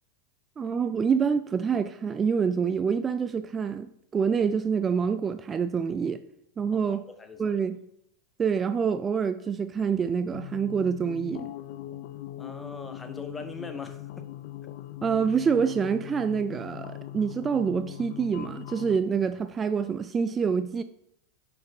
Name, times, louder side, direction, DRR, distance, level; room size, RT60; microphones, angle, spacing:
voice 1, 0.6-6.2 6.6-7.1 7.4-7.8 8.4-11.5 15.0-20.8, right 6 dB, 25° right, 0.3 m, -26 dB
voice 2, 6.9-7.6 12.4-14.3, left 3 dB, 15° left, 1.0 m, -41 dB
sound 1, 10.3-19.0, left 14 dB, 60° left, 0.4 m, -40 dB
5.9 x 5.2 x 5.2 m
hypercardioid pair, 100°, 0 cm